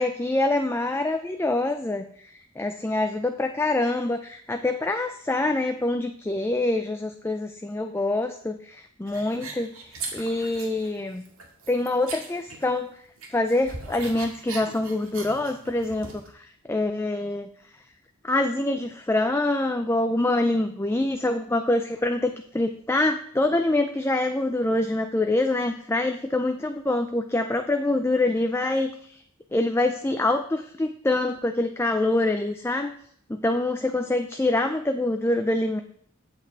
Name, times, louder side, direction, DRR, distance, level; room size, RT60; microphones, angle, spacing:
voice 1, 0.0-2.0 2.6-9.7 10.1-11.2 11.7-12.9 13.3-17.5 18.2-29.1 29.5-32.9 33.4-35.8, left 2 dB, 10° left, 6 dB, 0.4 m, -25 dB
sound 1, 9.1-10.9 11.2-12.9 13.2-16.3, right 4 dB, 75° right, 1.9 m, -40 dB
8.3 x 8.0 x 4.6 m, 0.63 s
head